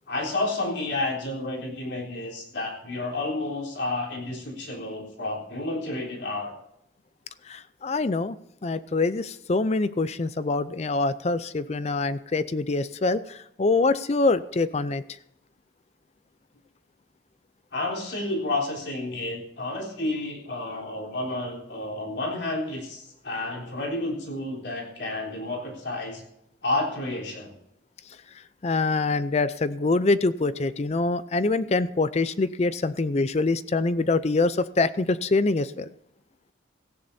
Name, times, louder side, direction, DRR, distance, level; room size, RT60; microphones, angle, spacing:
voice 1, 0.1-6.5 17.7-26.2 26.6-27.5, left 2 dB, 70° left, -1 dB, 3.7 m, -30 dB
voice 2, 7.5-8.4 8.6-15.0 28.6-35.9, left 3 dB, 35° left, 14 dB, 0.4 m, -25 dB
17.5 x 15.0 x 2.7 m, 0.79 s
head